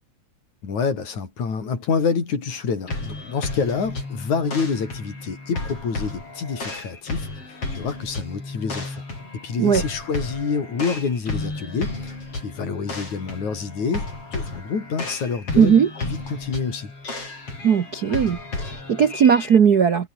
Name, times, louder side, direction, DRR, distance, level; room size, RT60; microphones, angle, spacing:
voice 1, 0.6-9.0 9.3-12.0 12.4-16.9, left 5 dB, 65° left, 6.1 m, -27 dB
sound 1, 2.9-19.6, left 3 dB, 45° left, 8.8 m, -33 dB
voice 2, 15.6-15.9 17.6-20.1, right 7 dB, 80° right, 0.8 m, -18 dB
omnidirectional pair, 3.7 m